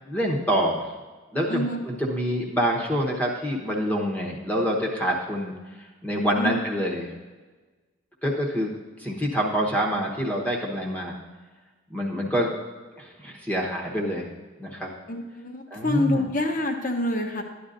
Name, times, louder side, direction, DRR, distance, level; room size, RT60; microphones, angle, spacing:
voice 1, 0.1-0.9 1.3-7.1 8.2-8.7 9.0-11.2 11.9-12.5 12.9-14.3 14.6-14.9 15.7-16.3, equal, 5° left, -1 dB, 1.0 m, -26 dB
voice 2, 1.5-1.8 6.3-6.6 15.1-17.4, left 1 dB, 40° left, 4 dB, 0.9 m, -27 dB
13.0 x 9.9 x 2.6 m, 1.3 s
head